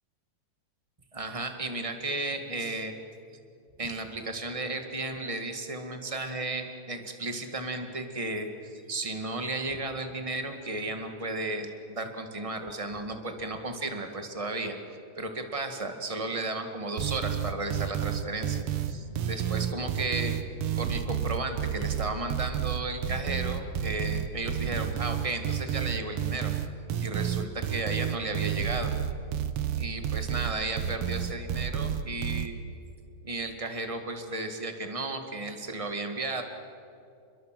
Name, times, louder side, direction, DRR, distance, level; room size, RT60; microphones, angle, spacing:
voice 1, 1.1-2.9 3.8-14.8 15.1-20.4 20.8-26.5 27.0-28.9 29.8-32.5 33.2-36.4, right 2 dB, 30° right, 5 dB, 0.6 m, -34 dB
sound 1, 17.0-32.5, right 9 dB, 65° right, 1.5 m, -30 dB
29.5 x 22.0 x 7.6 m, 2.5 s
omnidirectional pair, 4.1 m